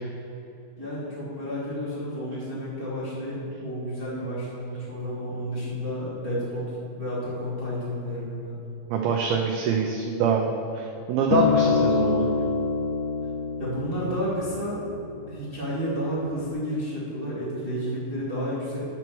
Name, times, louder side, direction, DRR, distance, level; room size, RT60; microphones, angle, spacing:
voice 1, 0.8-8.6 13.6-14.8 15.3-18.8, equal, 25° right, -10 dB, 1.1 m, -31 dB
voice 2, 8.9-10.5 10.7-12.3, right 6 dB, 85° right, 1 dB, 2.1 m, -25 dB
Acoustic guitar, 11.3-15.6 16.4-16.5, left 5 dB, 80° left, 2.6 m, -25 dB
10.0 x 4.6 x 6.8 m, 2.9 s
omnidirectional pair, 5.1 m